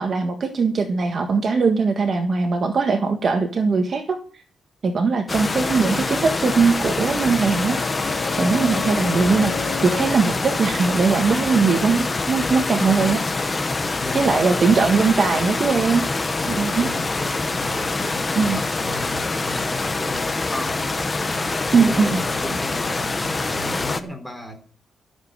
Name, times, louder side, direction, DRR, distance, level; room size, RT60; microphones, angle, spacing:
voice 1, 0.0-4.2 4.8-7.8 8.4-9.5 9.8-13.2 14.1-16.0 16.5-16.9 18.3-18.6 21.7-22.2, right 4 dB, 40° right, 5 dB, 1.6 m, -20 dB
sound 1, 5.3-24.0, left 3 dB, 20° left, 1.1 m, -25 dB
sound 2, 7.0-12.4 12.7-12.8, left 6 dB, 40° left, 3.2 m, -34 dB
voice 2, 13.8-14.4 16.4-20.9 21.3-24.6, left 1 dB, ahead, 4 dB, 4.3 m, -35 dB
14.5 x 7.6 x 8.6 m, 0.42 s
wide cardioid pair, 150°, 0 cm